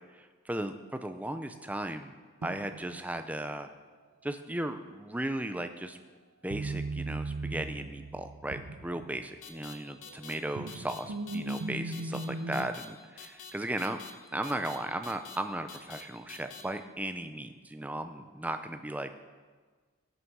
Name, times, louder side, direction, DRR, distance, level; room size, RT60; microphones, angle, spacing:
voice 1, 0.1-2.1 2.4-3.7 4.2-6.0 6.4-14.0 14.3-19.1, right 1 dB, 5° right, 8 dB, 0.4 m, -36 dB
aliens on television, 2.4-3.1 6.5-9.6 10.1-12.7, right 2 dB, 80° right, 0.6 m, -38 dB
sound 1, 9.4-9.7 10.0-10.3 10.7-11.0 11.3-11.6 11.9-12.2 12.5-12.9 13.2-13.5 13.8-14.1 14.4-14.8 15.0-15.4 15.7-16.0 16.3-16.6, left 7 dB, 70° left, 1.0 m, -46 dB
18.0 x 6.3 x 4.7 m, 1.5 s
head